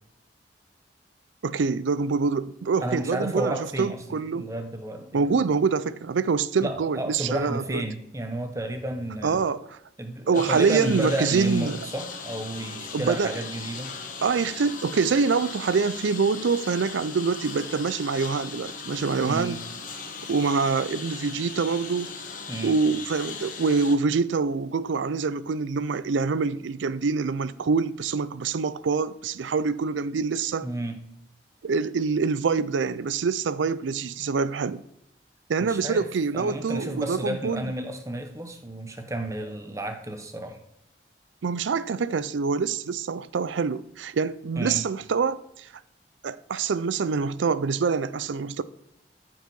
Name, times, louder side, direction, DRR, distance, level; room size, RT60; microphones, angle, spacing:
voice 1, 1.4-4.5 5.1-7.8 9.2-9.8 10.3-11.8 12.9-13.4 14.2-19.6 20.3-22.1 22.6-30.7 31.6-34.8 35.5-37.7 41.4-45.7 46.2-48.6, right 5 dB, 85° right, 0.4 m, -25 dB
voice 2, 2.8-5.4 6.6-9.4 10.0-13.9 19.2-19.6 22.5-22.8 30.6-31.0 35.6-36.0 36.3-40.6 44.5-44.8, right 1 dB, 15° right, 0.9 m, -32 dB
Engine, 10.3-24.0, left 5 dB, 45° left, 1.2 m, -38 dB
13.5 x 4.7 x 5.4 m
head